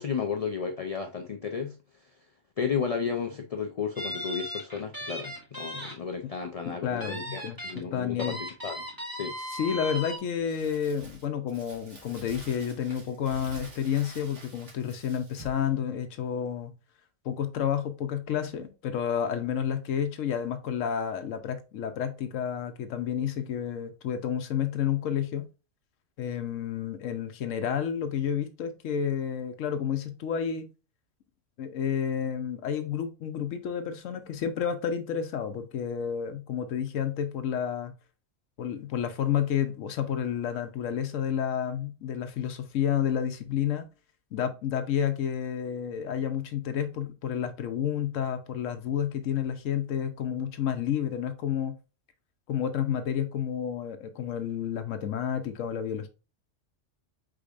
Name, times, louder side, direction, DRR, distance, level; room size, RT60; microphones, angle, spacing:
voice 1, 0.0-1.8 2.0-2.1 2.6-8.9 9.1-9.3, left 6 dB, 45° left, 0.5 m, -33 dB
sound 1, 4.0-5.9 6.3-6.4 7.0-7.8 8.2-10.2, equal, 15° right, 1.7 m, -37 dB
voice 2, 6.7-8.4 9.5-16.7 17.2-25.5 26.2-30.7 31.6-37.9 38.6-43.9 44.3-51.7 52.5-56.1, left 8 dB, 90° left, 1.1 m, -30 dB
Crumpling crinkling, 10.5-15.7, right 2 dB, 70° right, 1.9 m, -49 dB
5.0 x 3.9 x 2.4 m
omnidirectional pair, 1.3 m